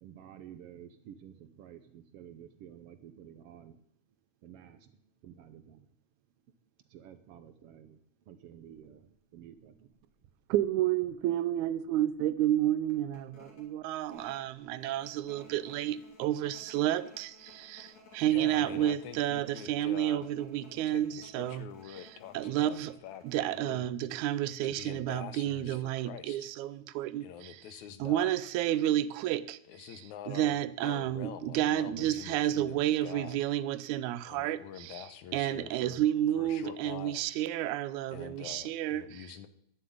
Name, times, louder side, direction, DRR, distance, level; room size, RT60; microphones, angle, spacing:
voice 1, 0.0-3.8 4.4-5.0 5.2-5.9 6.9-8.0 8.3-9.9, right 9 dB, 70° right, 1.6 m, -51 dB
sound 1, 8.7-8.9 9.4-9.5 9.8-10.7 11.1-11.2 11.6-11.8 12.2-12.3 12.9-23.7, left 3 dB, 65° left, 3.9 m, -57 dB
voice 2, 10.5-22.1 22.3-22.9 23.2-27.6 28.0-35.0 35.3-39.3, right 12 dB, 90° right, 2.1 m, -31 dB
voice 3, 18.3-20.3 20.8-22.8 23.0-23.9 24.6-26.5 27.2-28.3 29.7-33.4 34.2-36.0 36.3-37.2 38.1-39.5, left 10 dB, 85° left, 2.3 m, -45 dB
11.5 x 7.4 x 9.3 m
omnidirectional pair, 3.3 m